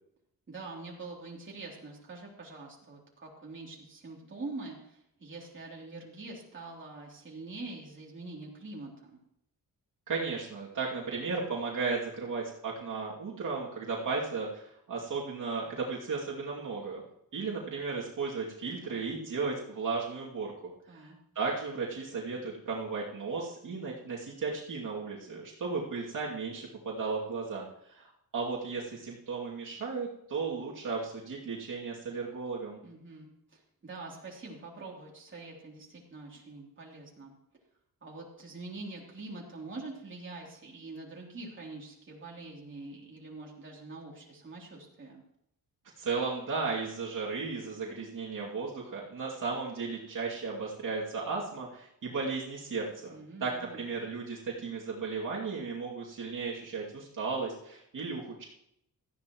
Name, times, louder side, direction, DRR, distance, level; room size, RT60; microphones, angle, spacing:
voice 1, 0.5-9.2 20.9-21.2 32.8-37.3 38.0-45.2 53.1-53.8, right 3 dB, 35° right, -3 dB, 3.3 m, -45 dB
voice 2, 10.1-17.1 17.3-21.1 21.3-32.8 46.0-58.5, right 4 dB, 60° right, -5 dB, 2.7 m, -35 dB
17.5 x 14.0 x 3.1 m, 0.74 s
wide cardioid pair, 170°, 36 cm